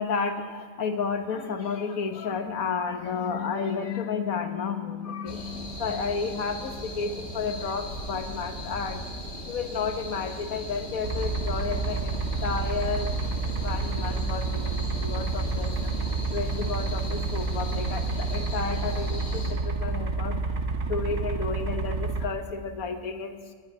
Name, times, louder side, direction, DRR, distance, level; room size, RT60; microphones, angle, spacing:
voice 1, 0.0-9.1 9.5-13.1 13.5-23.5, left 5 dB, 75° left, 7 dB, 1.7 m, -32 dB
sound 1, 5.3-19.5, left 1 dB, 45° left, 2.4 m, -38 dB
sound 2, 11.0-22.3, right 4 dB, 55° right, 1.4 m, -29 dB
18.5 x 6.9 x 9.6 m, 1.5 s
omnidirectional pair, 1.5 m